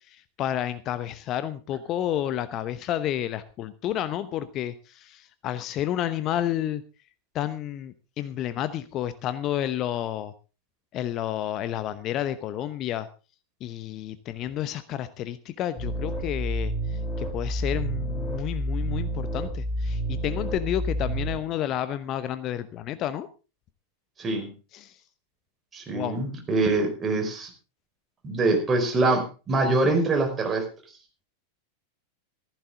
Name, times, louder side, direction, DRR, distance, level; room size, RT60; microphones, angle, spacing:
voice 1, 0.1-6.8 7.3-10.3 10.9-13.1 13.6-23.3 24.7-24.9 25.9-26.2, left 11 dB, 35° left, 13 dB, 0.9 m, -30 dB
sound 1, 15.8-21.4, right 1 dB, 10° left, 7.5 m, -29 dB
voice 2, 24.2-24.5 25.7-27.5 28.2-30.7, right 2 dB, 20° right, 3 dB, 5.0 m, -24 dB
15.0 x 15.0 x 3.8 m, 0.33 s
figure-of-eight pair, 90°, 0 cm